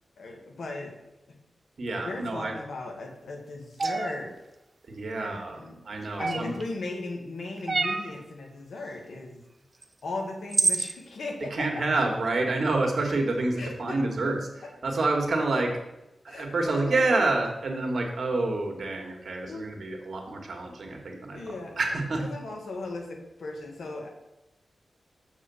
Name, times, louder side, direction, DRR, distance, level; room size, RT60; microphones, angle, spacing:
voice 1, 0.2-1.0 2.0-4.4 5.2-5.8 6.2-9.4 10.0-11.7 13.6-14.0 16.3-17.3 19.5-19.7 21.3-21.8 22.3-24.1, left 2 dB, 75° left, 2 dB, 1.7 m, -37 dB
voice 2, 1.8-2.6 4.9-5.6 5.9-6.5 11.5-15.8 16.2-21.4 21.8-22.2, right 2 dB, 60° right, 2 dB, 1.7 m, -28 dB
sound 1, 3.8-4.1 6.2-6.6 7.7-8.1 9.8-9.9 10.5-10.9, right 3 dB, 40° right, 0.7 m, -26 dB
7.1 x 4.8 x 7.0 m, 0.95 s
wide cardioid pair, 95°, 0 cm